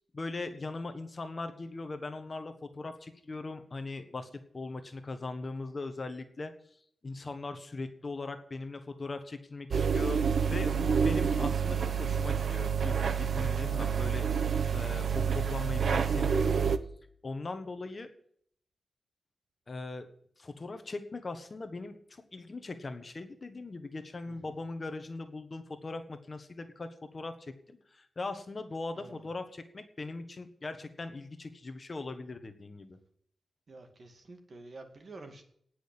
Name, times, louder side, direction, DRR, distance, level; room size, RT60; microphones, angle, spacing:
voice 1, 0.0-6.5 7.0-14.3 14.7-16.6 17.2-18.1 19.7-20.1 20.4-33.0, left 3 dB, 30° left, 8 dB, 1.3 m, -40 dB
sound 1, 9.7-16.8, right 6 dB, 60° right, 0.9 m, -28 dB
voice 2, 33.7-35.4, right 2 dB, 40° right, 5 dB, 2.3 m, -49 dB
18.5 x 6.4 x 8.5 m, 0.65 s
wide cardioid pair, 175°, 0 cm